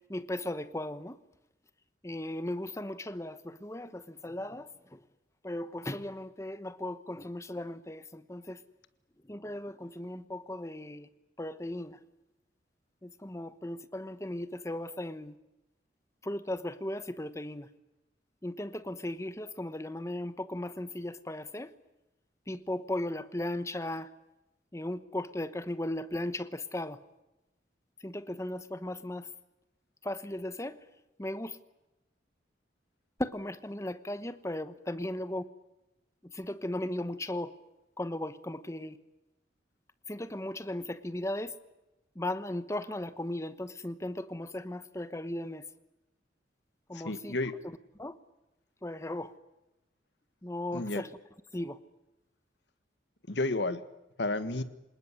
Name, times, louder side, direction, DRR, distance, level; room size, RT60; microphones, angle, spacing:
voice 1, 0.1-1.2 2.0-5.0 5.4-8.6 9.2-11.1 11.4-12.0 13.0-15.3 16.2-17.7 18.4-21.7 22.5-24.1 24.7-27.0 28.0-29.3 30.0-30.8 31.2-31.6 33.2-35.5 36.2-37.5 38.0-39.0 40.1-41.5 42.1-45.7 46.9-47.4 47.6-48.2 48.8-49.3 50.4-51.2 51.5-51.8, left 1 dB, 15° left, 1.0 m, -37 dB
voice 2, 46.9-47.5 50.7-51.0 53.3-53.8 54.2-54.6, left 2 dB, 70° left, 1.6 m, -31 dB
26.5 x 19.5 x 9.8 m
head